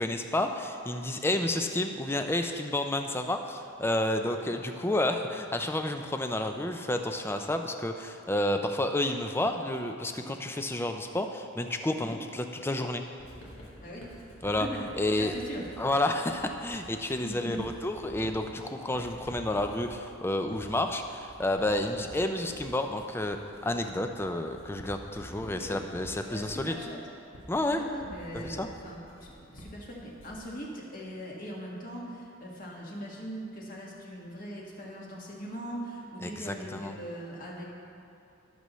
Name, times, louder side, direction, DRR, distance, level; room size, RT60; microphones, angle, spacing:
voice 1, 0.0-13.0 14.4-14.7 15.0-15.3 15.8-26.8 27.5-27.8 28.3-28.7 36.2-36.9, left 1 dB, 10° left, 6 dB, 0.4 m, -30 dB
Writing, 13.2-30.5, equal, 80° left, 1.9 m, -49 dB
voice 2, 13.8-14.1 14.4-14.9 15.2-15.6 17.2-17.6 25.4-25.8 26.3-27.0 27.7-37.6, equal, 40° left, -3 dB, 1.7 m, -40 dB
17.5 x 6.8 x 3.1 m, 2.6 s
head